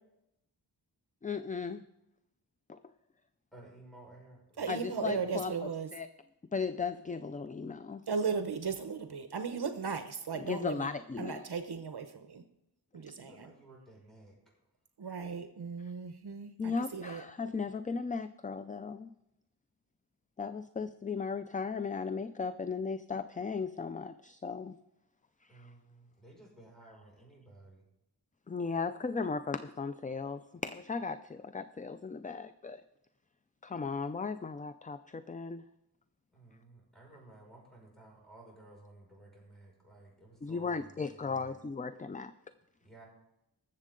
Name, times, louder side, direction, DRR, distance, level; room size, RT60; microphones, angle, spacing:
voice 1, 1.2-1.8 2.7-2.8 4.7-6.1 6.5-8.0 10.3-11.4 16.6-19.1 20.4-24.8 25.4-25.7 28.5-32.8 33.6-35.6 40.4-42.3, left 5 dB, 20° left, 11 dB, 0.4 m, -36 dB
voice 2, 3.5-5.3 13.1-14.4 25.5-27.8 36.3-41.6 42.8-43.0, right 2 dB, ahead, -2 dB, 5.8 m, -55 dB
voice 3, 4.6-5.9 8.1-10.9 11.2-12.4 12.9-13.5 15.0-17.2, right 5 dB, 65° right, 7 dB, 0.9 m, -36 dB
20.0 x 7.4 x 3.8 m, 0.84 s
wide cardioid pair, 105°, 42 cm